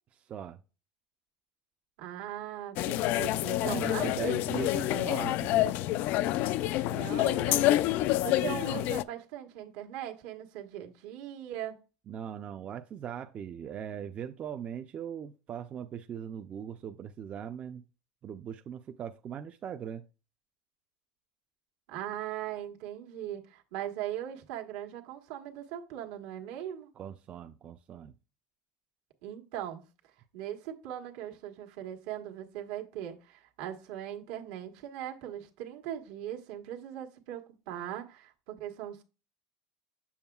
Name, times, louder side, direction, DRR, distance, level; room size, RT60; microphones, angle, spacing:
voice 1, 2.0-4.3 6.8-7.9 8.2-11.8 21.9-26.9 29.2-29.8 30.3-39.0, right 11 dB, 80° right, 1.3 m, -39 dB
sound 1, 2.8-9.0, left 15 dB, 60° left, 0.3 m, -28 dB
voice 2, 3.6-5.7 12.1-17.8 18.2-20.0 27.0-28.1, right 8 dB, 35° right, 0.5 m, -40 dB
7.1 x 6.9 x 2.3 m
supercardioid pair, 125°, 4 cm